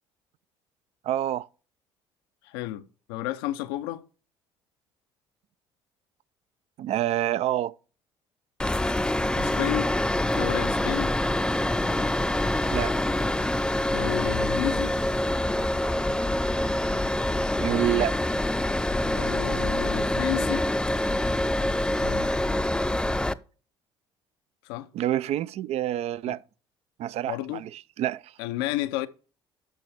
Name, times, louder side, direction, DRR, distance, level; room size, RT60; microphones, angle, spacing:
voice 1, 1.0-1.5 6.8-7.7 12.7-12.9 17.6-18.2 24.9-26.4 27.0-28.3, right 12 dB, 60° right, 0.4 m, -27 dB
voice 2, 2.5-4.1 9.3-9.9 10.3-11.2 13.9-14.9 19.1-20.7 22.0-22.3 24.7-24.9 26.3-26.4 27.3-27.6 28.4-29.1, left 15 dB, 85° left, 0.6 m, -31 dB
sound 1, 8.6-23.3, left 1 dB, 5° left, 0.5 m, -25 dB
10.5 x 6.2 x 3.4 m
hypercardioid pair, 65°, 12 cm